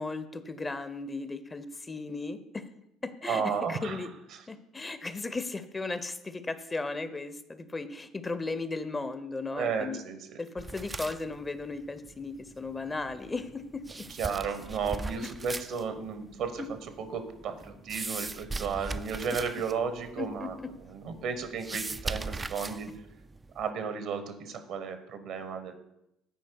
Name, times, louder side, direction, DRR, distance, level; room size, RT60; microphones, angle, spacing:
voice 1, 0.0-2.7 3.0-4.1 4.5-10.0 10.4-14.1 16.6-16.7 20.2-20.7, left 3 dB, 20° left, 12 dB, 0.7 m, -36 dB
voice 2, 3.3-4.0 9.5-10.4 14.2-16.6 17.0-20.6 20.9-22.9 23.5-25.7, right 6 dB, 60° right, 9 dB, 0.9 m, -33 dB
sound 1, 10.6-23.7, right 3 dB, 20° right, 0.3 m, -41 dB
9.4 x 4.6 x 4.5 m, 0.86 s
hypercardioid pair, 60°, 0 cm